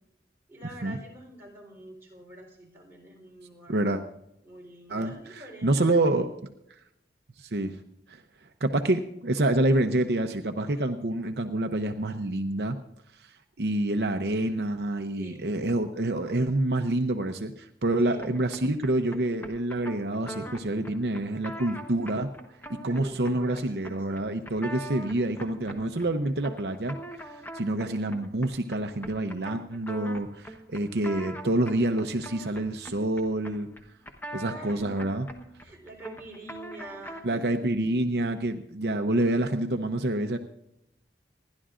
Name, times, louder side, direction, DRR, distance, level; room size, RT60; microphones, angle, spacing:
voice 1, 0.5-3.9 4.4-6.2 15.2-15.5 18.0-18.3 22.8-24.2 34.5-35.2 35.6-37.6, right 1 dB, 15° right, -3 dB, 3.8 m, -46 dB
voice 2, 3.7-4.0 4.9-6.3 7.4-7.8 8.1-8.2 8.6-12.8 13.2-13.3 13.6-22.3 22.7-27.0 27.2-33.7 34.3-35.3 37.2-40.4, right 1 dB, 65° right, 6 dB, 0.8 m, -27 dB
sound 1, 18.2-37.4, right 1 dB, 10° left, 1.1 m, -43 dB
27.0 x 11.5 x 2.5 m, 0.82 s
head